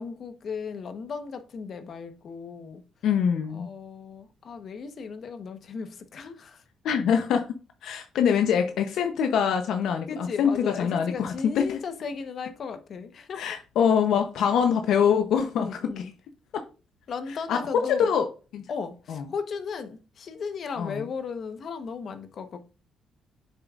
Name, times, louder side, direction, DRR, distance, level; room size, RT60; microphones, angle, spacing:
voice 1, 0.0-2.8 3.5-6.6 10.1-13.6 15.6-16.1 17.1-18.1 18.7-22.6, left 5 dB, 55° left, 1.0 m, -36 dB
voice 2, 3.0-3.7 6.8-7.5 7.8-11.8 13.4-15.8 16.5-16.6 17.5-18.3 18.5-18.6 19.1-19.2 20.8-20.9, left 7 dB, 80° left, 0.7 m, -24 dB
8.0 x 6.7 x 2.4 m
cardioid pair, 90°, 0 cm